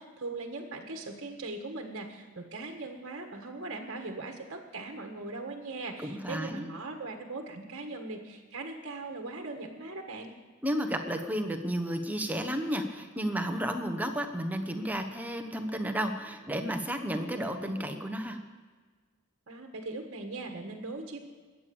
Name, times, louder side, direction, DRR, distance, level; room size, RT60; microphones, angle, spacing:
voice 1, 0.0-10.3 19.5-21.2, right 3 dB, 55° right, 2 dB, 1.5 m, -40 dB
voice 2, 6.0-6.7 10.6-18.4, equal, 10° right, 5 dB, 1.0 m, -32 dB
22.0 x 8.7 x 7.0 m, 1.4 s
head